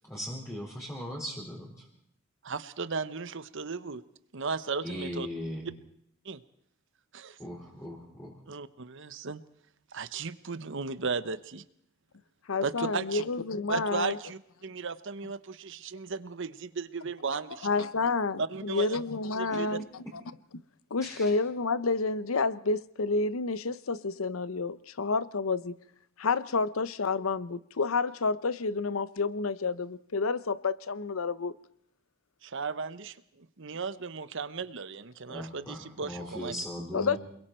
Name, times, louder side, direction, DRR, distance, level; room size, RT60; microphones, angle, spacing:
voice 1, 0.1-1.8 4.8-5.7 7.4-8.3 19.5-19.7 20.0-20.1 21.0-21.3 35.3-37.2, equal, 15° left, 4.8 m, -39 dB
voice 2, 2.4-4.0 4.3-5.3 6.2-6.4 7.1-7.4 8.5-9.4 9.9-11.6 12.6-13.2 13.7-17.9 18.4-19.0 19.4-19.8 32.4-36.6, right 4 dB, 65° right, 1.0 m, -35 dB
voice 3, 12.5-14.2 17.6-20.0 20.9-25.8 26.2-31.5 36.9-37.2, left 4 dB, 85° left, 0.8 m, -29 dB
29.0 x 22.0 x 4.5 m
head